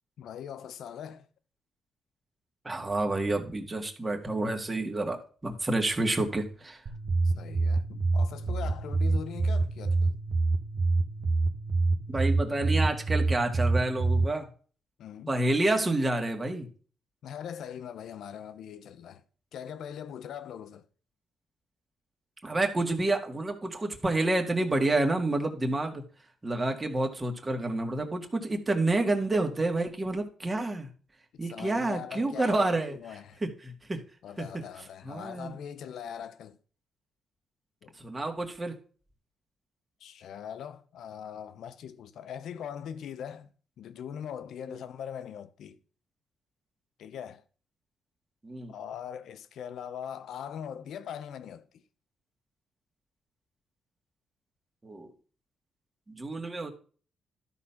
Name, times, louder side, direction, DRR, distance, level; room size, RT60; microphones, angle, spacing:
voice 1, 0.2-1.3 7.2-10.2 15.0-15.4 17.2-19.2 19.5-20.8 31.3-33.4 34.2-36.6 37.8-37.9 40.0-43.5 43.8-45.8 47.0-47.4 48.7-51.8, left 8 dB, 70° left, 0.9 m, -41 dB
voice 2, 2.6-6.8 12.1-14.5 15.3-16.7 22.4-26.0 26.4-30.9 31.4-33.0 33.4-34.0 35.0-35.5 38.0-38.7 48.4-48.7 54.8-55.1 56.1-56.7, right 2 dB, 20° right, 1.9 m, -29 dB
sound 1, 6.9-14.3, right 3 dB, 50° right, 1.4 m, -27 dB
12.5 x 4.2 x 5.8 m
cardioid pair, 90°, 0 cm